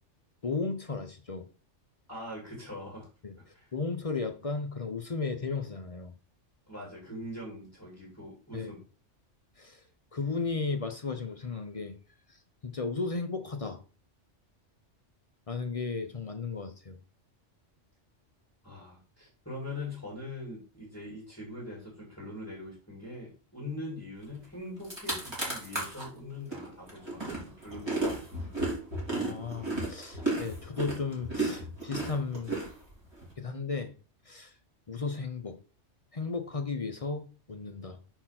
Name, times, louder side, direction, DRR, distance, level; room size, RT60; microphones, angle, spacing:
voice 1, 0.4-1.5 3.2-3.3 3.7-6.1 8.5-8.7 9.6-9.8 10.1-11.9 12.6-13.8 15.5-17.0 29.1-32.5 33.4-33.9 34.3-34.5 34.9-35.6 36.1-38.0, left 4 dB, 40° left, 0.6 m, -34 dB
voice 2, 2.1-3.1 3.5-3.7 6.7-8.8 18.6-28.6, left 1 dB, 10° left, 2.4 m, -42 dB
sound 1, 24.4-24.5 24.8-26.1 26.5-33.3, right 2 dB, 20° right, 2.8 m, -33 dB
4.8 x 4.5 x 5.8 m
omnidirectional pair, 1.2 m